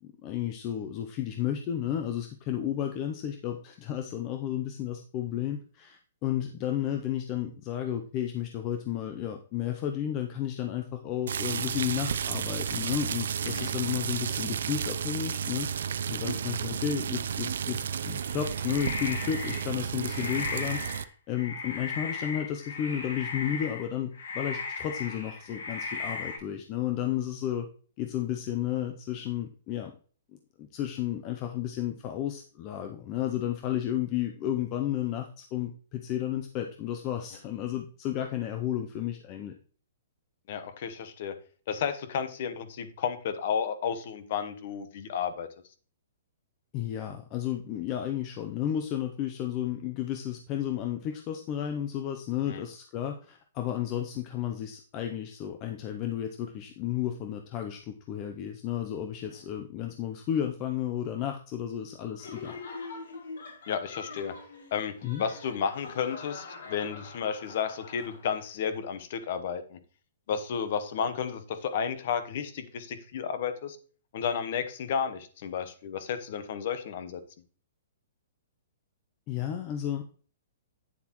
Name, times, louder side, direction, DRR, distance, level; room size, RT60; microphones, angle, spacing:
voice 1, 0.0-15.7 16.1-20.8 21.3-27.7 28.0-29.9 30.6-39.5 46.7-62.6 65.0-65.2 79.3-80.2, left 11 dB, 20° left, 5 dB, 0.5 m, -32 dB
sound 1, 11.3-21.0, right 7 dB, 60° right, 0.5 m, -32 dB
sound 2, 18.1-19.7 20.0-21.1 21.3-23.9 24.1-26.4, left 4 dB, 85° left, 4.7 m, -37 dB
voice 2, 40.5-41.4 41.7-45.5 52.5-52.6 63.7-64.4 64.7-69.8 70.3-73.8 74.1-77.2, left 7 dB, 35° left, 11 dB, 0.9 m, -32 dB
Laughter, 62.2-68.5, left 4 dB, 65° left, 4.2 m, -43 dB
9.5 x 7.2 x 3.0 m, 0.41 s
hypercardioid pair, 180°, 0 cm